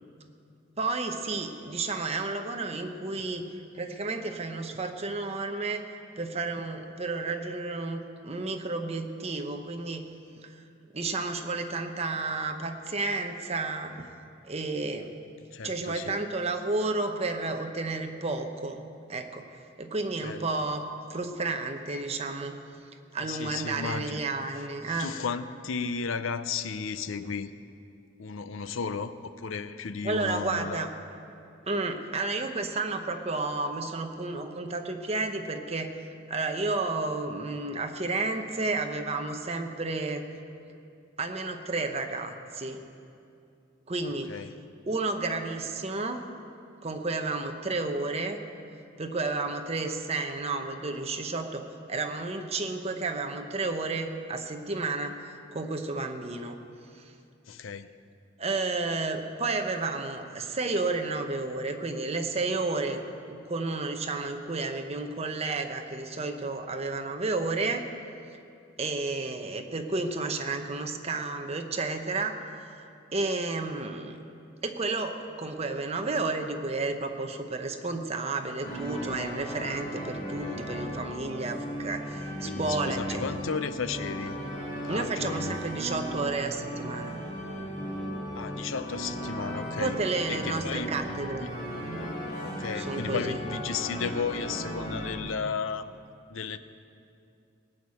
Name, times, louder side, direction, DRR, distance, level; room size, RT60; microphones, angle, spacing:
voice 1, 0.8-3.5 3.7-5.8 6.2-10.1 10.4-10.5 10.9-14.0 14.5-15.1 15.6-18.8 19.1-19.4 19.8-20.8 21.1-22.6 23.1-25.1 30.0-30.9 31.7-35.9 36.3-40.2 41.2-42.8 43.9-44.3 44.9-46.3 46.8-48.4 49.0-56.6 56.9-57.1 58.4-67.9 68.8-74.1 74.6-83.2 84.9-87.2 89.8-91.5 92.8-93.4, right 3 dB, 30° right, 5 dB, 0.9 m, -31 dB
voice 2, 15.5-16.2 20.2-20.4 23.2-24.2 24.9-27.5 28.2-30.9 44.3-44.5 57.5-57.9 80.4-80.6 82.4-84.4 84.8-85.6 88.3-90.0 90.3-90.9 91.4-91.5 92.4-95.9 96.3-96.6, left 5 dB, 85° left, 12 dB, 0.6 m, -34 dB
sound 1, 78.6-95.2, equal, 40° left, 3.8 m, -36 dB
18.5 x 6.5 x 8.5 m, 2.5 s
head